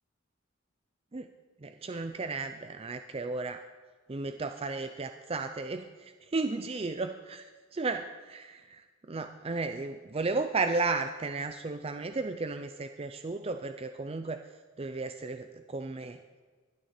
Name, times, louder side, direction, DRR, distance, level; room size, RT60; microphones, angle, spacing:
voice 1, 1.6-3.6 4.1-14.4 14.8-16.2, right 3 dB, 30° right, 8 dB, 0.5 m, -34 dB
20.5 x 12.5 x 4.3 m, 1.4 s
head